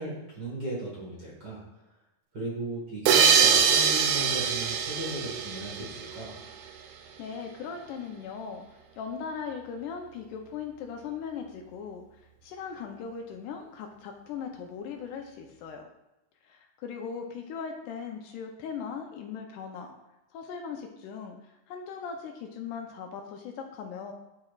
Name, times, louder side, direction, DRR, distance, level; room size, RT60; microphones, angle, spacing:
voice 1, 0.0-1.6 2.3-6.4, right 2 dB, 45° right, -6 dB, 1.5 m, -36 dB
sound 1, 3.1-6.4, right 6 dB, 90° right, 1.6 m, -23 dB
voice 2, 7.2-12.0 12.4-15.9 16.4-19.9 20.3-21.4 21.7-24.1, left 6 dB, 80° left, 3 dB, 2.0 m, -39 dB
11.5 x 4.3 x 2.4 m, 0.96 s
omnidirectional pair, 3.9 m